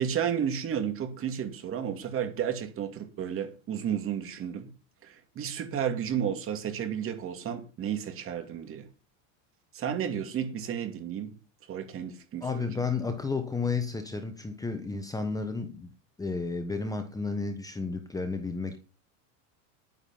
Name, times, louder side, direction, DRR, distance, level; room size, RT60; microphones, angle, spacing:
voice 1, 0.0-4.7 5.0-8.9 9.7-11.3 11.7-12.7, right 8 dB, 35° right, 2.4 m, -32 dB
voice 2, 12.4-15.9 16.2-18.8, left 4 dB, 10° left, 1.2 m, -32 dB
10.5 x 9.5 x 5.6 m
supercardioid pair, 140°, 39 cm